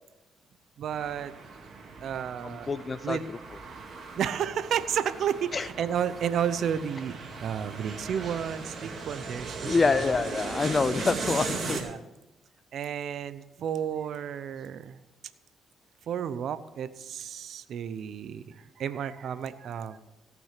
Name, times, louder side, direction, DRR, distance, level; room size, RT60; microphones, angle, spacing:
voice 1, 0.8-1.3 2.0-2.7 3.0-3.2 4.2-9.8 11.8-12.0 12.7-15.0 16.1-20.0, right 8 dB, 65° right, 14 dB, 0.7 m, -32 dB
sound 1, 0.9-11.8, right 4 dB, 50° right, 2.3 m, -38 dB
voice 2, 2.4-3.2 5.5-5.7 9.6-11.8, left 4 dB, 35° left, 14 dB, 0.4 m, -26 dB
17.5 x 6.1 x 5.9 m, 1.0 s
cardioid pair, 90°, 0 cm